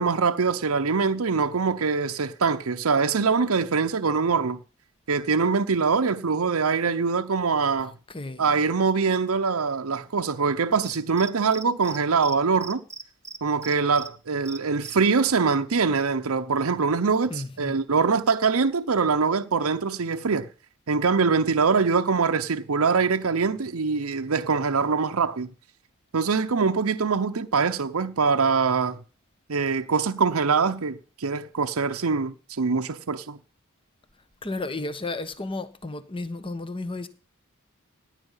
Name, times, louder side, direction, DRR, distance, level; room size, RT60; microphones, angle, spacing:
voice 1, 0.0-4.6 5.1-7.9 8.4-12.8 13.4-20.5 20.9-25.5 26.1-29.0 29.5-33.4, right 5 dB, 75° right, 0.8 m, -23 dB
voice 2, 7.8-8.5 17.3-17.8 34.4-37.1, left 2 dB, 25° left, 1.2 m, -33 dB
Cricket, 10.8-12.0 12.2-12.4 12.6-14.1 14.5-14.9, right 4 dB, 15° right, 0.8 m, -39 dB
18.0 x 10.5 x 5.6 m
head